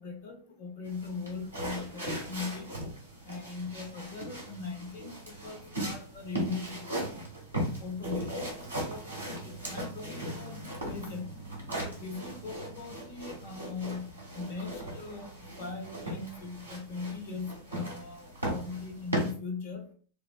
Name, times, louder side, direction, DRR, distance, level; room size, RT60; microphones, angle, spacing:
voice 1, 0.0-2.7 3.3-7.2 7.8-9.1 9.4-11.3 11.8-19.9, left 4 dB, 50° left, 4 dB, 0.9 m, -40 dB
sound 1, 0.9-19.3, equal, 85° right, 1.2 m, -38 dB
4.3 x 2.1 x 2.4 m, 0.42 s
figure-of-eight pair, 90°, 0 cm